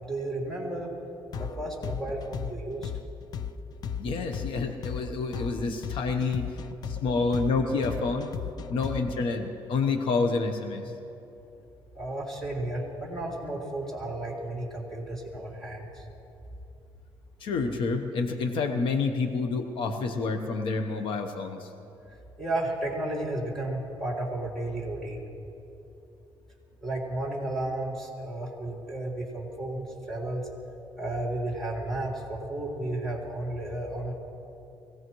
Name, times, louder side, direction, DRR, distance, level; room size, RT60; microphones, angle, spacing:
voice 1, 0.0-0.9 1.4-2.9 12.0-16.0 22.4-25.2 26.8-30.5 31.0-34.1, right 1 dB, 5° left, -3 dB, 3.8 m, -33 dB
sound 1, 1.3-9.3, left 7 dB, 50° left, 0.6 m, -35 dB
voice 2, 4.0-6.5 6.9-8.3 8.7-10.8 17.4-21.7, left 4 dB, 75° left, 6 dB, 1.0 m, -28 dB
24.0 x 17.5 x 3.1 m, 2.9 s
cardioid pair, 115°, 9 cm